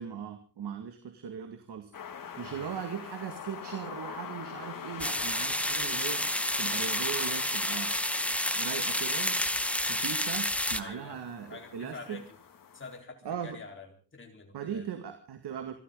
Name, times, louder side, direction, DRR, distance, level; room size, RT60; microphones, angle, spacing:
voice 1, 0.0-1.9 2.2-6.3 6.6-8.0 8.5-9.5 9.8-12.2 13.2-13.6 14.5-15.7, right 8 dB, 65° right, 7 dB, 2.1 m, -39 dB
sound 1, 1.9-13.0, left 7 dB, 50° left, 2.2 m, -44 dB
sound 2, 5.0-10.8, left 1 dB, 5° left, 0.9 m, -30 dB
voice 2, 10.8-11.2 11.5-12.4 12.7-14.9, left 4 dB, 25° left, 2 dB, 4.1 m, -47 dB
27.0 x 13.0 x 3.9 m, 0.34 s
wide cardioid pair, 150°, 43 cm